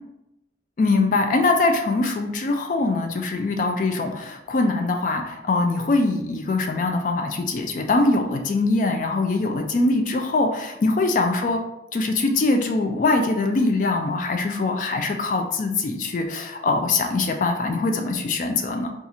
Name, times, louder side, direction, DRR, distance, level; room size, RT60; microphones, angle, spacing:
voice 1, 0.8-11.6 11.9-18.9, left 3 dB, 45° left, 4 dB, 0.3 m, -22 dB
2.6 x 2.4 x 4.2 m, 0.90 s
head